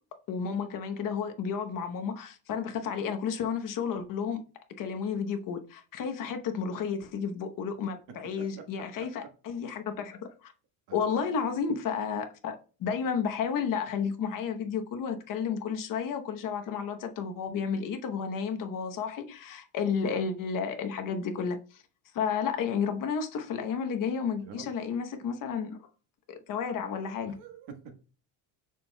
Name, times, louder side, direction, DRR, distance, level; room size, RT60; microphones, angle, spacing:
voice 1, 0.3-4.4 4.8-10.5 10.9-21.8 22.1-25.8 26.3-27.4, left 6 dB, 50° left, 0.9 m, -32 dB
voice 2, 10.9-11.2 24.4-24.7 27.2-27.9, right 6 dB, 75° right, 1.5 m, -46 dB
6.9 x 6.2 x 2.2 m
cardioid pair, 145°, 43 cm